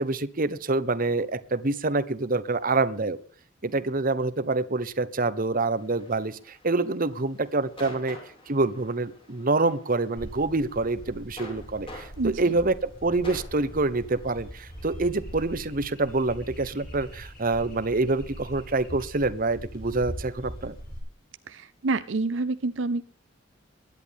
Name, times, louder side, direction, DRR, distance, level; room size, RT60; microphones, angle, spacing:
voice 1, 0.0-3.2 3.6-8.2 8.5-20.8, right 3 dB, 45° right, 15 dB, 1.0 m, -26 dB
sound 1, 5.8-20.8, left 1 dB, 25° left, 5.2 m, -50 dB
sound 2, 10.2-21.0, equal, 50° left, 7.3 m, -42 dB
voice 2, 12.2-12.5 21.5-23.0, right 3 dB, 65° right, 12 dB, 0.6 m, -28 dB
22.0 x 11.0 x 3.6 m, 0.43 s
head